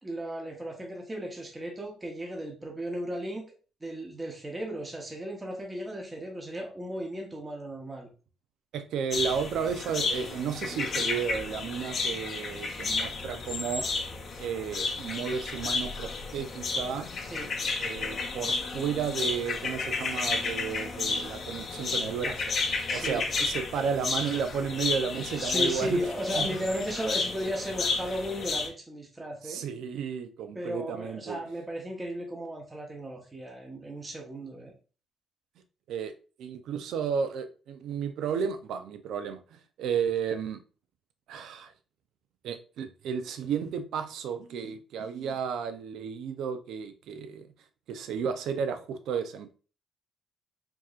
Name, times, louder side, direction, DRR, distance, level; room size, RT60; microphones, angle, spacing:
voice 1, 0.0-3.4 3.8-8.1 17.2-17.5 22.9-23.3 25.4-29.6 30.5-34.7, equal, 20° right, 0.9 m, -35 dB
voice 2, 8.7-13.8 14.4-17.1 17.8-22.5 22.9-26.0 26.4-26.5 29.4-31.4 35.9-36.1 36.4-40.6 41.3-41.7 42.4-47.4 47.9-49.5, right 7 dB, 80° right, 0.5 m, -33 dB
sound 1, 9.1-28.7, left 4 dB, 50° left, 0.7 m, -32 dB
4.6 x 2.8 x 2.4 m
cardioid pair, 90°, 0 cm